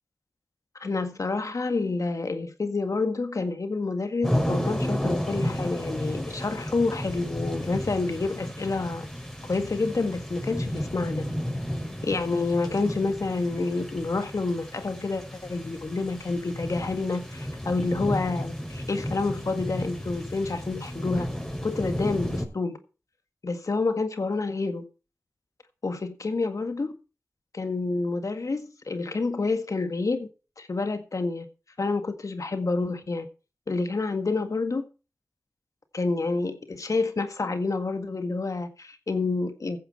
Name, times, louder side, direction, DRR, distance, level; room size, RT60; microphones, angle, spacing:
voice 1, 0.8-9.1 9.5-11.3 12.0-21.3 21.6-22.8 23.4-24.8 25.8-26.9 27.5-30.3 30.6-31.5 31.8-33.3 33.7-34.8 35.9-39.8, left 3 dB, 65° left, 1.8 m, -28 dB
sound 1, 4.2-22.4, equal, 10° left, 5.8 m, -32 dB
14.5 x 10.0 x 4.3 m
cardioid pair, 45°, 6 cm